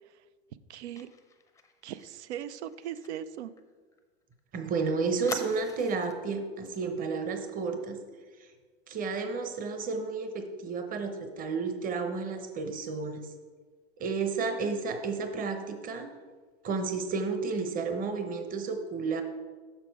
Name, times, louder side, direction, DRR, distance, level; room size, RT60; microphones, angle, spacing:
voice 1, 0.7-1.1 1.8-3.5, right 10 dB, 85° right, 14 dB, 0.5 m, -39 dB
Fire, 1.0-4.4 4.7-4.8 5.3-6.2 6.6-6.8 7.1-7.4, left 4 dB, 10° left, 0.5 m, -45 dB
voice 2, 4.5-8.0 8.4-8.5 8.9-13.3 14.0-16.1 16.6-19.2, right 4 dB, 25° right, 6 dB, 0.8 m, -32 dB
6.7 x 6.0 x 4.6 m, 1.4 s
supercardioid pair, 125°, 33 cm